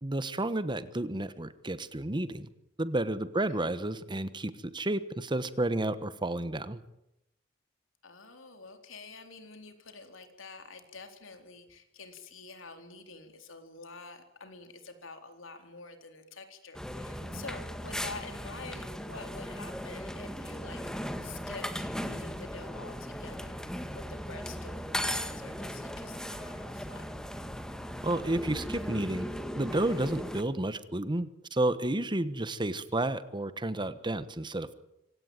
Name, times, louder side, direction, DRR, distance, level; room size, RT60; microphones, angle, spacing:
voice 1, 0.0-2.5 2.8-6.8 17.2-17.4 28.0-29.3 29.6-34.7, right 1 dB, 25° right, 14 dB, 1.2 m, -31 dB
voice 2, 8.0-23.6 23.9-27.1 29.9-30.2, left 3 dB, 90° left, 6 dB, 3.9 m, -47 dB
sound 1, 16.7-30.4, equal, 5° left, 1.7 m, -38 dB
25.0 x 17.5 x 9.1 m, 0.85 s
head